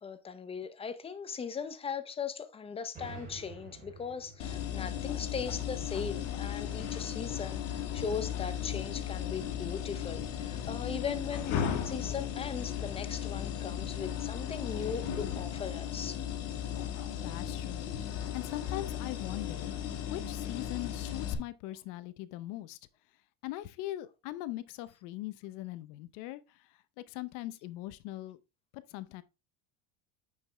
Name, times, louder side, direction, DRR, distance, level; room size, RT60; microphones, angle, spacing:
voice 1, 0.0-16.2, left 6 dB, 15° left, 0.6 m, -39 dB
sound 1, 2.9-6.6, right 3 dB, 20° right, 3.5 m, -51 dB
sound 2, 4.4-21.3, left 9 dB, 80° left, 2.2 m, -36 dB
voice 2, 17.2-22.8 23.4-28.4 28.7-29.2, left 16 dB, 55° left, 0.7 m, -41 dB
9.2 x 5.3 x 3.3 m
cardioid pair, 155°, 37 cm